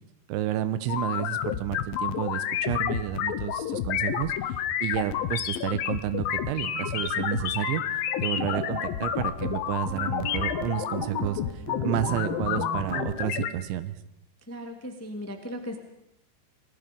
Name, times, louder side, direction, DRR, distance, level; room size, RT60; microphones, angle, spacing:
voice 1, 0.3-4.3 4.8-14.0, right 12 dB, 90° right, 13 dB, 3.5 m, -31 dB
sound 1, 0.9-13.5, left 10 dB, 70° left, 2.3 m, -30 dB
sound 2, 6.3-13.4, right 6 dB, 65° right, 3.4 m, -39 dB
voice 2, 14.5-15.8, equal, 10° left, 4 dB, 1.0 m, -37 dB
28.5 x 20.0 x 5.4 m, 0.84 s
omnidirectional pair, 5.2 m